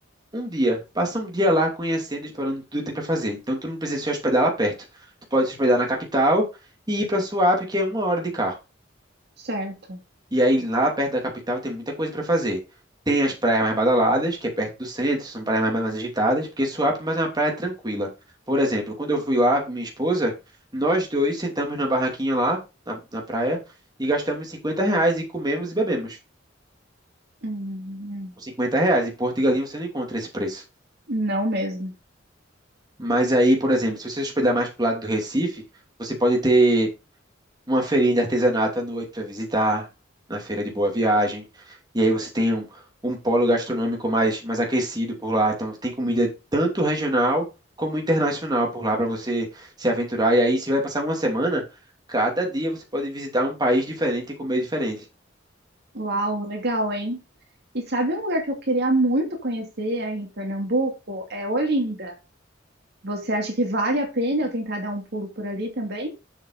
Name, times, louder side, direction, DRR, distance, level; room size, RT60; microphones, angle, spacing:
voice 1, 0.3-4.7 5.3-6.4 6.9-8.6 10.3-11.2 11.5-12.6 13.1-18.1 18.5-20.3 20.7-22.6 22.9-23.6 24.0-26.2 28.4-30.6 33.0-35.6 36.0-36.9 37.7-39.9 40.3-41.4 41.9-42.6 43.0-47.4 47.8-51.6 52.1-55.0, right 1 dB, 20° right, 0 dB, 2.8 m, -23 dB
voice 2, 9.4-10.0 27.4-28.3 31.1-31.9 55.9-57.2 57.7-62.1 63.0-66.1, right 1 dB, 60° right, 2 dB, 2.5 m, -26 dB
7.5 x 6.5 x 4.0 m, 0.26 s
head